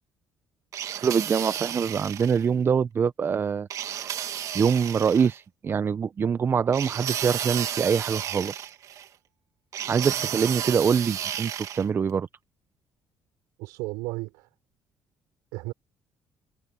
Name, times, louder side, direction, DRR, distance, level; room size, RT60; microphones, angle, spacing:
sound 1, 0.7-2.5 3.7-5.3 6.7-9.1 9.7-11.9, right 10 dB, 60° right, 2.2 m, -32 dB
voice 1, 1.0-3.7 4.5-8.7 9.9-12.3, right 6 dB, 35° right, 0.7 m, -24 dB
voice 2, 13.6-14.5 15.5-15.7, right 22 dB, 90° right, 3.7 m, -34 dB
supercardioid pair, 80°, 6 cm